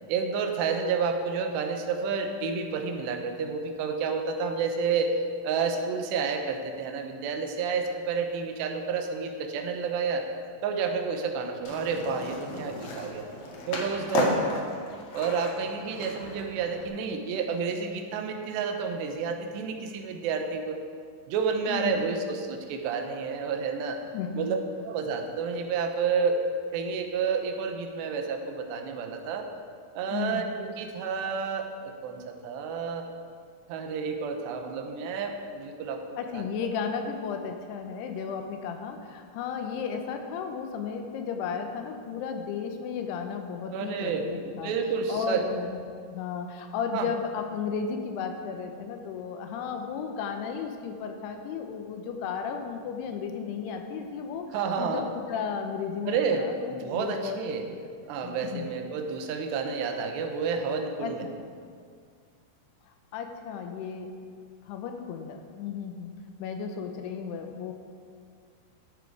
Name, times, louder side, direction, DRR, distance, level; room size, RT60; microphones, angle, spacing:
voice 1, 0.1-5.1 5.4-10.2 10.6-13.3 13.7-14.8 15.1-20.8 21.3-24.0 24.4-24.6 24.9-26.4 26.7-29.5 30.0-33.1 33.7-36.5 43.7-45.4 46.9-47.1 54.5-55.0 56.1-57.7 58.1-61.2, right 5 dB, 85° right, 4 dB, 3.1 m, -30 dB
Skateboard, 11.6-16.9, left 2 dB, 60° left, 2.3 m, -34 dB
voice 2, 21.7-22.1 24.1-24.5 30.1-30.5 36.2-44.7 45.1-54.5 54.8-57.4 57.7-57.9 58.2-59.0 61.0-61.3 63.1-64.1 64.7-66.1 66.4-67.7, left 6 dB, 80° left, 5 dB, 2.8 m, -34 dB
13.0 x 8.2 x 4.8 m, 2.1 s
omnidirectional pair, 4.8 m